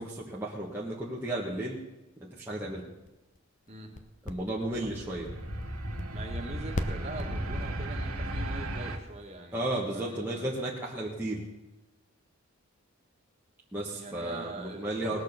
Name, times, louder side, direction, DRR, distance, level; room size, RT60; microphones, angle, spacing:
voice 1, 0.0-1.8 2.3-2.8 4.2-5.3 9.5-11.5 13.7-15.2, right 1 dB, 10° right, -6 dB, 1.4 m, -33 dB
sound 1, 2.7-7.7, left 1 dB, 35° left, 0.8 m, -41 dB
sound 2, 4.6-9.0, right 1 dB, 80° right, 1.3 m, -35 dB
voice 2, 6.1-10.5 13.9-15.2, right 2 dB, 30° right, 1 dB, 2.0 m, -43 dB
19.0 x 6.6 x 6.7 m, 1.0 s
head